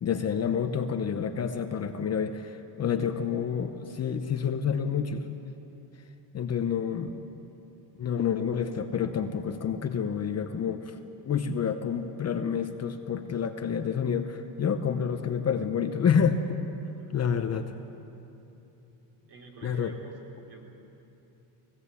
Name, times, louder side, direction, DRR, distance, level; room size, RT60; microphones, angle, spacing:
voice 1, 0.0-5.3 6.3-7.1 8.0-11.0 11.2-16.6 17.1-17.7 19.6-19.9, left 7 dB, 30° left, 7 dB, 0.8 m, -28 dB
voice 2, 16.8-17.6 19.2-20.6, right 3 dB, 50° right, 0 dB, 3.5 m, -49 dB
19.0 x 17.0 x 8.3 m, 3.0 s
cardioid pair, 150°, 49 cm